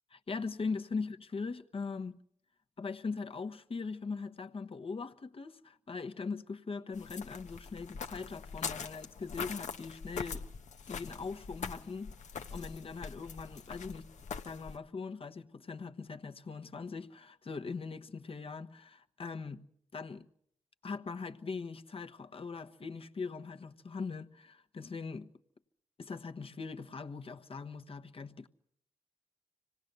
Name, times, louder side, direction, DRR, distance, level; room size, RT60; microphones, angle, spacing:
voice 1, 0.1-2.2 2.8-10.4 10.9-12.1 12.5-14.1 14.4-19.6 19.9-20.2 20.8-25.3 26.0-28.5, left 4 dB, 45° left, 1.2 m, -41 dB
sound 1, 6.9-14.8, left 6 dB, 70° left, 1.0 m, -43 dB
25.5 x 18.0 x 6.8 m
supercardioid pair, 45°, 13 cm